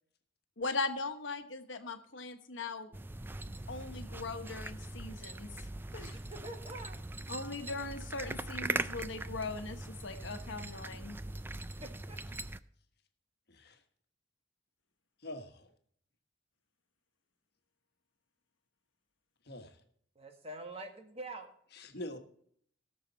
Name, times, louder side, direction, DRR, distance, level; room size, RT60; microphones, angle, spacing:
voice 1, 0.6-2.9 3.5-6.2 7.3-11.2, left 3 dB, 85° left, 7 dB, 1.2 m, -40 dB
sound 1, 2.9-12.6, right 2 dB, 10° right, 0.3 m, -41 dB
voice 2, 6.1-7.3 11.8-12.2 20.1-21.5, right 2 dB, 30° right, 5 dB, 1.5 m, -46 dB
voice 3, 13.5-13.8 15.2-15.7 19.4-19.8 21.7-22.2, left 1 dB, 60° left, 6 dB, 1.4 m, -44 dB
17.5 x 6.8 x 4.1 m, 0.63 s
head